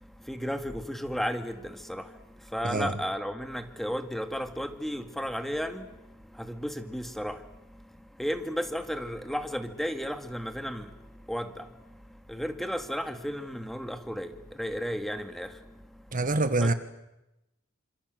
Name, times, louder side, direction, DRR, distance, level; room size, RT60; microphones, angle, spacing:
voice 1, 0.3-2.0 2.5-5.9 6.4-7.4 8.2-10.9 11.3-11.6 12.3-14.3 14.6-15.5 16.6-16.7, equal, ahead, 2.1 m, -33 dB
voice 2, 16.1-16.7, right 2 dB, 40° right, 1.5 m, -25 dB
28.0 x 27.0 x 7.8 m
head